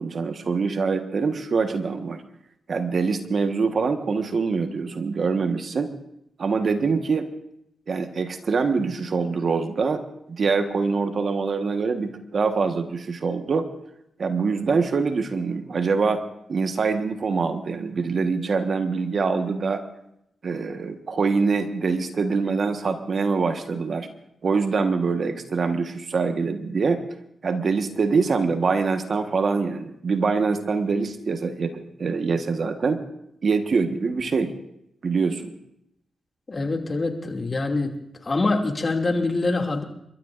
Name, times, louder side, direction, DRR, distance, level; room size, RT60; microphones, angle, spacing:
voice 1, 0.0-2.2 2.7-5.9 6.4-7.3 7.9-10.0 10.3-13.7 14.2-16.2 16.5-19.8 20.4-24.1 24.4-27.0 27.4-33.0 33.4-34.5 35.0-35.5, right 4 dB, 60° right, 7 dB, 1.4 m, -24 dB
voice 2, 36.5-38.0 38.2-39.8, left 3 dB, 40° left, 3 dB, 2.5 m, -24 dB
29.0 x 13.5 x 2.6 m, 0.78 s
supercardioid pair, 50°, 0 cm